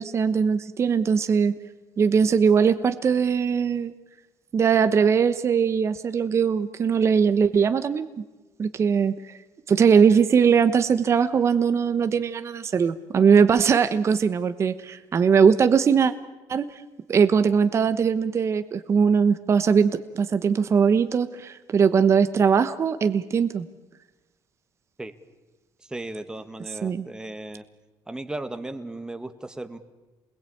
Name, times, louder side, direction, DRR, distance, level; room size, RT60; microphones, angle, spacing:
voice 1, 0.0-1.5 2.0-3.9 4.5-8.1 8.6-9.3 9.7-16.1 16.5-16.7 17.1-23.7 26.8-27.1, right 6 dB, 35° right, 10 dB, 1.1 m, -20 dB
voice 2, 25.9-27.6 28.1-29.8, right 2 dB, 10° right, 9 dB, 1.8 m, -36 dB
29.0 x 21.0 x 8.7 m, 1.1 s
cardioid pair, 120°, 8 cm